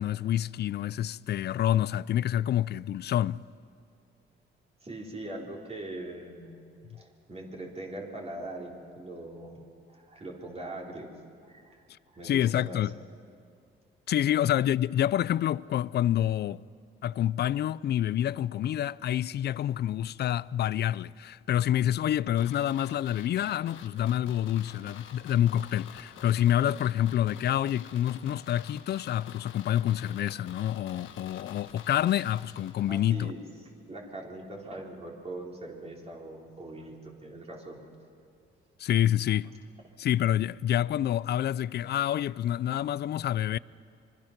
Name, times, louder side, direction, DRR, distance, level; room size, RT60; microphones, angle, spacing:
voice 1, 0.0-3.4 12.2-12.9 14.1-16.6 17.0-33.3 38.8-39.5 40.0-43.6, left 11 dB, 55° left, 0.5 m, -27 dB
voice 2, 4.8-6.6 6.9-11.1 11.4-12.8 32.9-33.4 33.9-37.8, right 1 dB, 30° right, 4.0 m, -41 dB
sound 1, 22.4-33.3 33.6-33.7, left 8 dB, 80° left, 1.5 m, -49 dB
25.5 x 23.5 x 6.0 m
cardioid pair, 90°, 20 cm